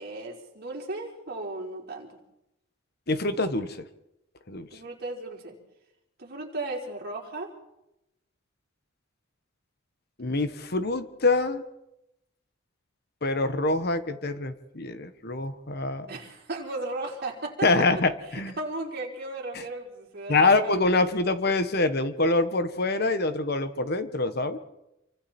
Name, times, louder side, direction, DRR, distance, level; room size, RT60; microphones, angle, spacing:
voice 1, 0.0-2.2 4.7-5.6 6.2-7.5 16.1-17.9 18.6-20.7, right 2 dB, 50° right, -1 dB, 4.6 m, -35 dB
voice 2, 3.1-3.8 4.5-4.7 10.2-11.6 13.2-16.1 17.6-18.6 19.5-19.6 20.3-24.6, left 3 dB, 50° left, 10 dB, 1.4 m, -25 dB
28.0 x 25.0 x 4.5 m, 0.88 s
head